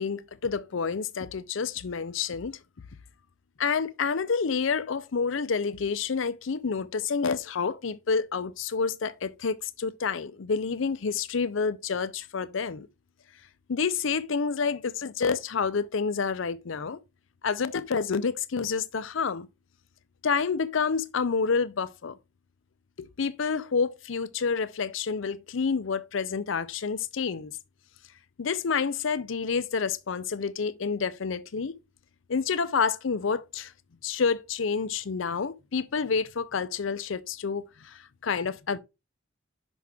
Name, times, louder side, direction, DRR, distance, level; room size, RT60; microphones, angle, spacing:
voice 1, 0.0-2.6 3.6-12.9 13.7-17.0 17.4-19.5 20.2-22.2 23.0-27.6 28.4-31.7 32.3-33.7 34.0-38.8, left 5 dB, 70° left, 0.5 m, -28 dB
6.1 x 6.0 x 3.4 m
head